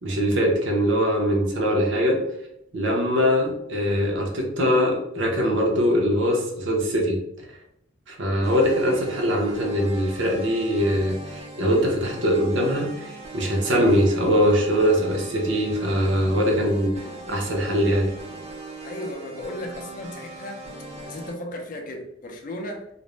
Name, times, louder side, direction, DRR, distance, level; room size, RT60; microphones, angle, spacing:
voice 1, 0.0-2.2 2.7-7.2 8.1-16.9 17.3-18.1, equal, 65° right, -1 dB, 0.7 m, -22 dB
sound 1, 8.4-21.3, right 2 dB, 35° right, 0.6 m, -40 dB
voice 2, 18.8-20.7 21.1-22.9, left 1 dB, 45° left, 3 dB, 0.4 m, -35 dB
2.5 x 2.0 x 3.1 m, 0.79 s
head